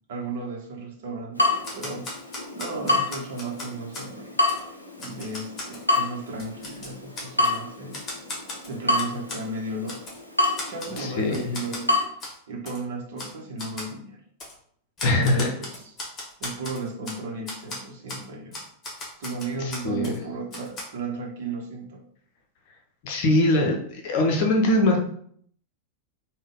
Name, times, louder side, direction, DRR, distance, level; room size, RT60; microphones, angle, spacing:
voice 1, 0.1-2.1 2.5-4.4 5.0-8.0 8.7-10.1 10.7-14.2 15.1-15.9 16.4-18.6 19.2-22.0, right 3 dB, 55° right, 0 dB, 0.8 m, -35 dB
Water tap faucet / Drip, 1.4-12.0, left 2 dB, 85° left, 0.5 m, -28 dB
Typewriter, 1.6-4.1 4.5-4.6 5.0-5.8 6.3-7.6 7.9-9.4 9.9-10.2 10.6-11.1 11.3-11.8 12.2-12.4 12.7-12.8 13.2-13.3 13.6-13.9 14.4-14.5 15.0-17.2 17.5-17.8 18.1-18.2 18.5-20.2 20.5-20.8, left 2 dB, 25° left, 1.2 m, -37 dB
voice 2, 11.0-11.3 15.0-15.5 19.8-20.1 23.0-23.8 24.0-25.0, left 1 dB, 50° left, 1 dB, 0.7 m, -21 dB
3.5 x 2.2 x 3.6 m, 0.62 s
figure-of-eight pair, 90°, 0 cm